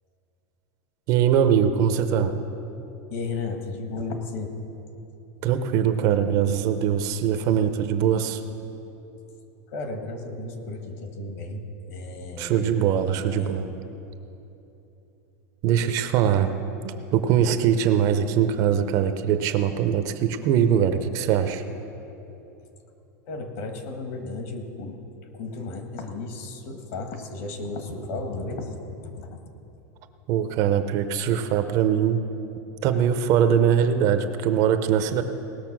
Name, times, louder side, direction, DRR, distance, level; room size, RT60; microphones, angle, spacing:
voice 1, 1.1-2.3 5.4-8.4 12.4-13.7 15.6-16.5 16.8-21.6 30.3-32.2 32.8-35.2, right 9 dB, 40° right, 9 dB, 0.6 m, -22 dB
voice 2, 3.1-4.6 9.7-12.7 13.2-13.6 23.2-25.0 25.3-29.4, left 3 dB, 55° left, 5 dB, 1.5 m, -34 dB
18.5 x 6.7 x 6.0 m, 3.0 s
supercardioid pair, 165°, 9 cm